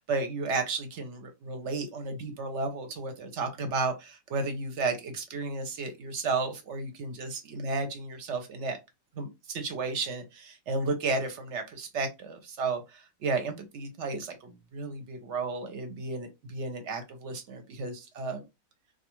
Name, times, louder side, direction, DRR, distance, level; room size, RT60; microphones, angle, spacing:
voice 1, 0.0-8.8 9.2-18.4, right 3 dB, 60° right, 0.8 m, -33 dB
2.3 x 2.3 x 2.9 m
omnidirectional pair, 1.6 m